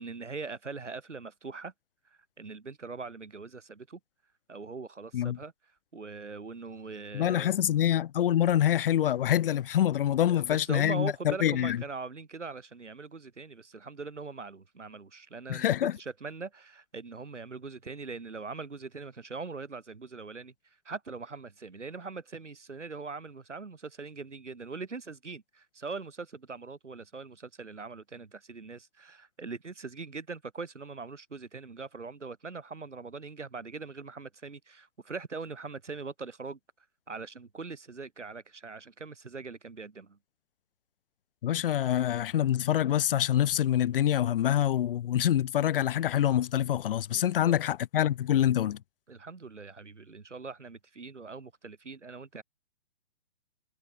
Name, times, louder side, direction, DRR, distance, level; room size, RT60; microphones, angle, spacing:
voice 1, 0.0-1.7 2.1-4.0 4.5-5.5 5.9-7.6 10.3-36.6 37.1-40.2 47.1-47.6 49.1-52.4, right 4 dB, 85° right, 6.7 m, -41 dB
voice 2, 7.1-11.8 15.5-16.0 41.4-48.8, left 11 dB, 50° left, 1.5 m, -26 dB
figure-of-eight pair, 130°, 35 cm